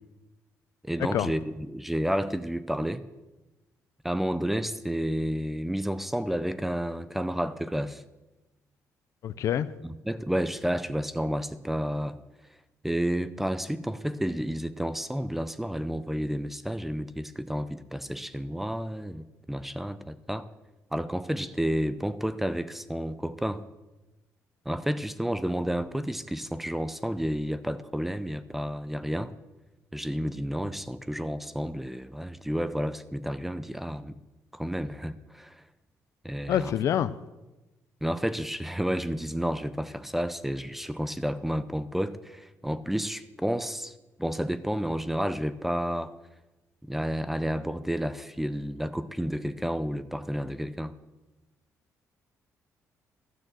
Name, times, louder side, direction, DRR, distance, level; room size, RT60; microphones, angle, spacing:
voice 1, 0.8-3.0 4.0-8.0 9.8-12.2 12.8-20.5 20.9-23.6 24.7-29.3 29.9-34.2 34.5-35.6 36.2-36.7 38.0-43.9 44.2-46.1 46.8-50.9, equal, 5° right, 14 dB, 0.5 m, -31 dB
voice 2, 9.2-9.7 36.5-37.1, left 10 dB, 65° left, 15 dB, 0.5 m, -26 dB
12.5 x 6.4 x 7.7 m, 1.1 s
cardioid pair, 145°, 6 cm